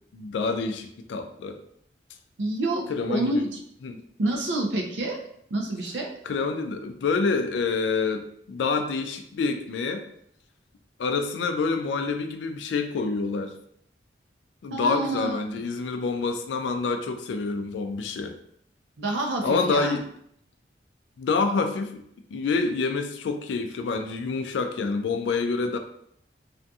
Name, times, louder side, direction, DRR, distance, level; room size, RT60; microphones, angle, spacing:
voice 1, 0.1-1.6 2.9-3.5 3.8-4.0 6.3-10.1 11.0-13.6 14.6-18.4 19.4-20.0 21.2-22.0 22.3-25.8, left 4 dB, 85° left, 7 dB, 0.3 m, -27 dB
voice 2, 2.4-3.4 4.2-5.2 5.5-6.1 14.7-15.4 19.0-19.9, right 2 dB, 85° right, 2 dB, 0.5 m, -28 dB
2.5 x 2.3 x 2.6 m, 0.68 s
head